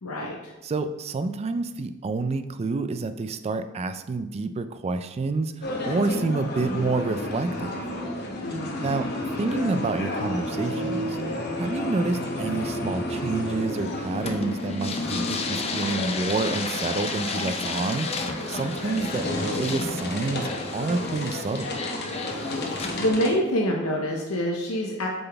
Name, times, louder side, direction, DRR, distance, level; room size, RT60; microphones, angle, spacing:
voice 1, 0.0-0.5 8.4-8.8 22.9-25.1, equal, 80° left, -1 dB, 0.7 m, -26 dB
voice 2, 0.6-7.8 8.8-9.1 9.4-11.2 11.6-18.2 18.5-21.8, right 3 dB, 30° right, 10 dB, 0.3 m, -28 dB
sound 1, 5.6-23.3, left 1 dB, 50° left, 0.9 m, -31 dB
sound 2, 13.8-23.1, left 3 dB, 30° left, 0.5 m, -33 dB
7.7 x 3.9 x 3.4 m, 1.0 s
head